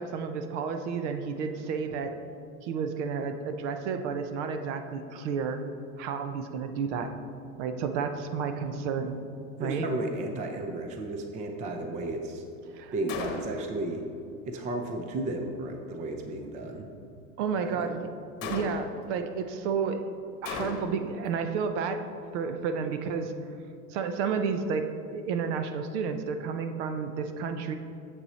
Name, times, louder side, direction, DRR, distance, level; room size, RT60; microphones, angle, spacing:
voice 1, 0.0-2.1 2.6-5.6 6.0-7.1 7.6-9.2 9.6-9.9 12.7-12.9 17.4-18.1 18.5-20.0 20.4-22.0 22.3-23.3 23.9-27.7, right 6 dB, 50° right, 7 dB, 0.8 m, -31 dB
voice 2, 9.6-12.4 12.9-14.0 14.5-16.9 17.6-18.0 18.4-18.7, right 2 dB, 15° right, 4 dB, 0.5 m, -34 dB
Gunshot gunfire, 13.1-13.8 18.4-19.1 20.5-21.1, left 6 dB, 50° left, 1.1 m, -36 dB
7.3 x 6.9 x 4.1 m, 2.7 s
hypercardioid pair, 110°, 45 cm